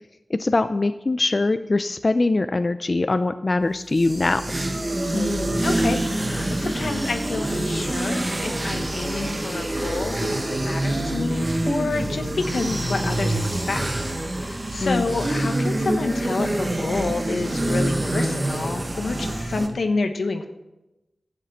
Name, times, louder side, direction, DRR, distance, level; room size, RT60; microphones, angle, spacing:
voice 1, 0.3-4.4 14.8-15.0, left 2 dB, 45° left, 10 dB, 0.5 m, -22 dB
sound 1, 3.7-19.7, right 1 dB, 30° right, 1.4 m, -26 dB
voice 2, 5.1-13.8 14.3-20.5, left 3 dB, 85° left, 6 dB, 1.2 m, -28 dB
11.5 x 7.6 x 8.0 m, 0.98 s
wide cardioid pair, 80°, 0 cm